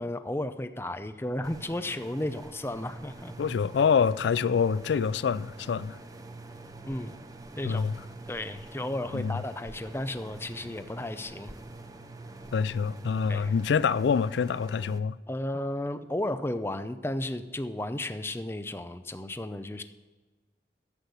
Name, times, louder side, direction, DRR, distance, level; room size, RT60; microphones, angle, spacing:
voice 1, 0.0-3.3 6.8-7.1 7.6-7.8 8.3-11.5 13.3-13.5 15.3-19.8, left 1 dB, 15° left, 0.5 m, -34 dB
sound 1, 1.4-15.0, right 2 dB, 20° right, 0.7 m, -45 dB
voice 2, 3.4-6.0 7.6-8.0 9.1-9.3 12.5-15.1, left 6 dB, 85° left, 0.3 m, -26 dB
11.5 x 8.0 x 6.9 m
head